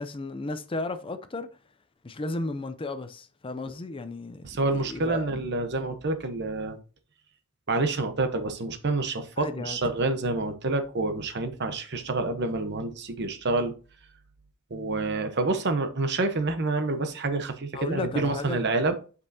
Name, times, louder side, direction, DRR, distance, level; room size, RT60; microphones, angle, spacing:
voice 1, 0.0-1.5 2.0-5.4 9.4-9.8 17.7-18.6, left 2 dB, 25° left, 0.5 m, -34 dB
voice 2, 4.4-6.8 7.7-13.7 14.7-18.9, right 3 dB, 55° right, 0.9 m, -28 dB
8.0 x 5.4 x 2.7 m
head